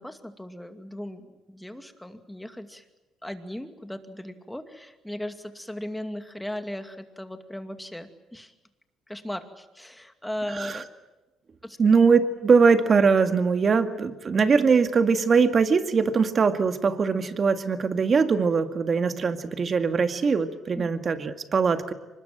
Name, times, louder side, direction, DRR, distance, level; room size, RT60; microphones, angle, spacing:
voice 1, 0.0-2.8 3.2-8.5 9.1-10.9 11.6-11.8 20.8-20.9, left 1 dB, 5° left, 7 dB, 2.4 m, -37 dB
voice 2, 11.8-21.9, right 5 dB, 40° right, 8 dB, 2.0 m, -21 dB
24.5 x 20.5 x 9.2 m, 1.1 s
cardioid pair, 90°, 0 cm